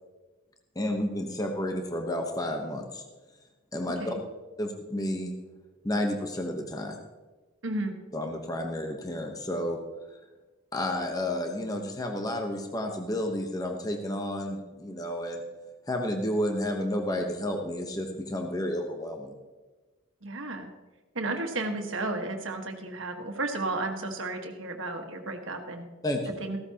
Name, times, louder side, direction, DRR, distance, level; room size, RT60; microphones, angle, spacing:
voice 1, 0.7-3.0 3.7-4.1 4.6-5.3 5.8-7.0 8.1-9.8 10.7-15.4 15.9-19.4 26.0-26.4, left 1 dB, 20° left, 3 dB, 1.0 m, -31 dB
voice 2, 7.6-7.9 20.2-20.7 21.1-25.8 26.4-26.6, right 2 dB, 75° right, 4 dB, 1.6 m, -33 dB
15.0 x 13.0 x 2.9 m, 1.2 s
head